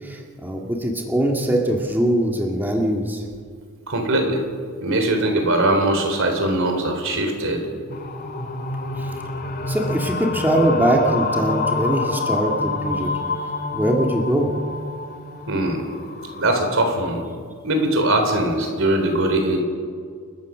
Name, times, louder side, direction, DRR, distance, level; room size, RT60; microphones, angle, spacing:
voice 1, 0.0-3.2 9.0-9.1 9.7-13.4 13.7-14.5, right 1 dB, 10° right, 0 dB, 2.0 m, -22 dB
voice 2, 3.9-4.4 4.8-7.6 15.5-15.9 16.4-17.2 17.6-19.6, right 1 dB, 65° right, 4 dB, 3.9 m, -21 dB
sound 1, 7.9-17.1, left 3 dB, 45° left, 2.3 m, -27 dB
29.5 x 14.0 x 6.3 m, 2.1 s
head